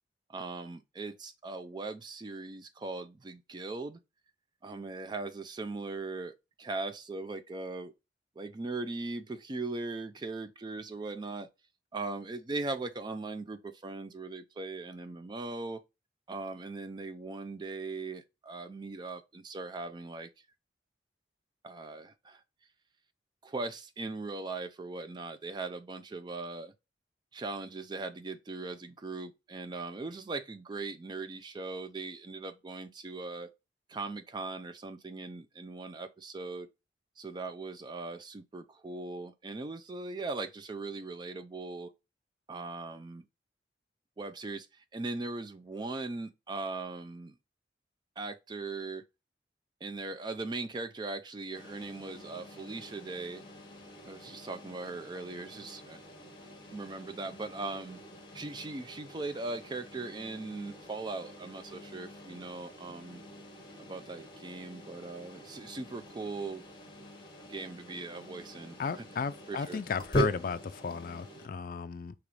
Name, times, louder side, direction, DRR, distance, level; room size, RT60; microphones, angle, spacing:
voice 1, 0.3-4.0 4.6-6.3 6.6-7.9 8.4-11.5 11.9-15.8 16.3-20.3 21.6-22.4 23.4-26.7 27.3-33.5 33.9-36.7 37.2-41.9 42.5-43.2 44.2-47.4 48.2-49.0 49.8-53.4 54.0-56.0 56.7-58.0 58.3-63.2 63.8-66.6 67.5-68.8 69.5-69.8, right 3 dB, 25° right, 0.3 m, -39 dB
sound 1, 51.5-71.5, equal, 25° left, 1.2 m, -43 dB
voice 2, 68.8-72.1, left 5 dB, 50° left, 0.3 m, -34 dB
5.2 x 2.9 x 3.2 m
head